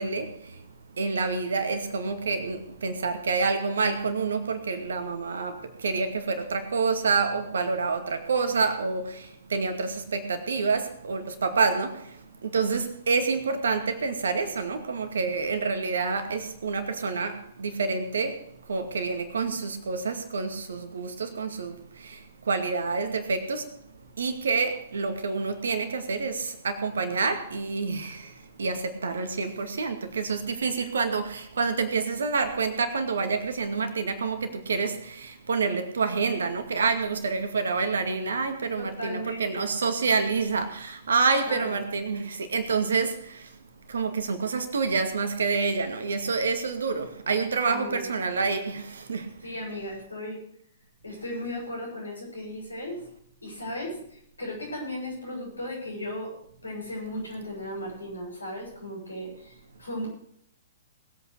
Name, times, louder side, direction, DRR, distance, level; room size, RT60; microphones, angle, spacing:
voice 1, 0.0-43.6 43.9-49.5, right 4 dB, 65° right, 2.3 m, -28 dB
voice 2, 38.8-39.6 41.5-41.8 47.6-48.1 49.4-50.4 51.0-53.0 53.4-56.3 56.6-60.1, left 1 dB, 80° left, 7.6 m, -36 dB
20.5 x 8.6 x 4.9 m
figure-of-eight pair, 115°, 0 cm